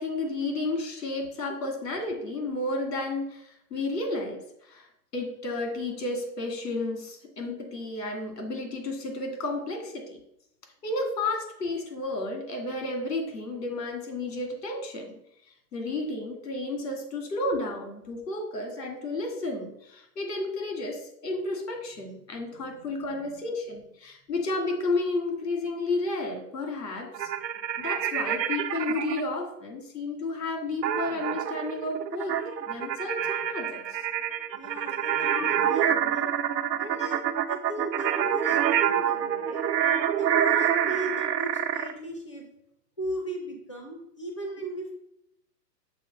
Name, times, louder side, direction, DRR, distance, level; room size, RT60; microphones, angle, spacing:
voice 1, 0.0-10.2 10.8-15.2 15.7-27.3 27.8-32.4 32.7-34.0 35.2-35.9, left 2 dB, 70° left, 3 dB, 2.4 m, -32 dB
sound 1, 27.1-29.2 30.8-41.9, right 9 dB, 85° right, 0.9 m, -27 dB
voice 2, 34.6-36.3 36.8-37.2 37.5-39.7 40.1-42.5 43.0-44.9, right 1 dB, 20° left, 2 dB, 0.6 m, -36 dB
6.9 x 3.8 x 6.2 m, 0.78 s
hypercardioid pair, 175°, 49 cm